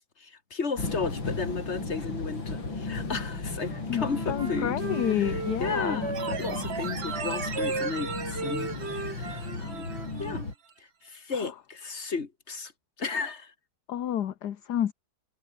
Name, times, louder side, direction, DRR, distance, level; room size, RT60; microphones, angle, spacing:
voice 1, 0.0-4.7 5.1-10.4 10.8-12.7 13.0-13.5, left 4 dB, 35° left, 2.5 m, -34 dB
sound 1, 0.8-10.5, left 3 dB, 85° left, 5.9 m, -35 dB
Wind instrument woodwind instrument, 3.7-6.7 7.1-10.5, right 3 dB, 35° right, 3.2 m, -36 dB
voice 2, 3.9-6.1 11.4-11.5 13.9-14.9, left 10 dB, 60° left, 1.5 m, -30 dB
sound 2, 6.1-10.4 10.7-10.8, right 6 dB, 80° right, 2.8 m, -38 dB
omnidirectional pair, 2.0 m